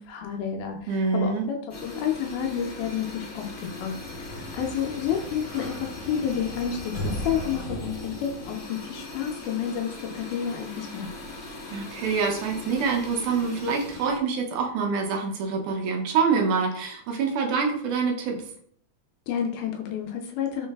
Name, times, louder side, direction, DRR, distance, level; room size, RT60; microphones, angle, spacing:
voice 1, 0.0-1.6 1.8-11.1 19.3-20.7, left 8 dB, 85° left, 3 dB, 2.0 m, -30 dB
voice 2, 0.9-1.5 11.7-18.4, right 5 dB, 80° right, 2 dB, 2.1 m, -26 dB
sound 1, 1.7-14.2, left 2 dB, 60° left, 0.9 m, -40 dB
Sliding door, 3.7-8.6, equal, 35° left, 1.9 m, -37 dB
4.6 x 3.8 x 2.2 m, 0.62 s
omnidirectional pair, 3.6 m